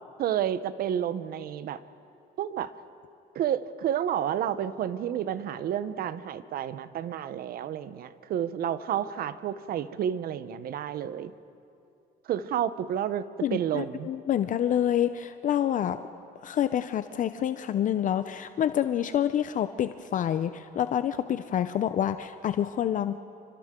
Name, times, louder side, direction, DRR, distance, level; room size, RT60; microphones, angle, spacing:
voice 1, 0.2-1.8 2.4-2.7 3.3-11.3 12.3-13.3 13.5-14.1, right 10 dB, 60° right, 14 dB, 0.8 m, -30 dB
voice 2, 13.4-16.0 16.4-23.2, left 10 dB, 50° left, 11 dB, 0.6 m, -27 dB
28.5 x 25.0 x 3.7 m, 2.6 s
cardioid pair, 110°, 17 cm